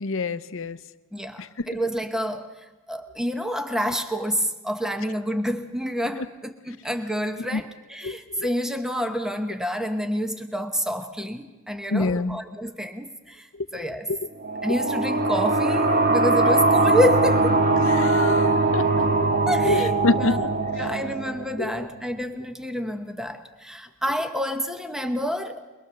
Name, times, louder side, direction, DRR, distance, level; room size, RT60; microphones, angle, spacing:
voice 1, 0.0-0.8 7.5-7.6 8.0-8.5 11.9-12.4 17.9-19.3 19.6-20.4 21.6-21.7, left 3 dB, 65° left, 13 dB, 0.7 m, -26 dB
voice 2, 1.1-2.5 2.9-14.1 14.6-17.6 18.4-18.5 19.5-25.6, equal, 5° right, 6 dB, 0.9 m, -28 dB
sound 1, 14.4-21.8, right 2 dB, 45° right, 1.7 m, -21 dB
22.5 x 21.5 x 6.8 m, 1.2 s
head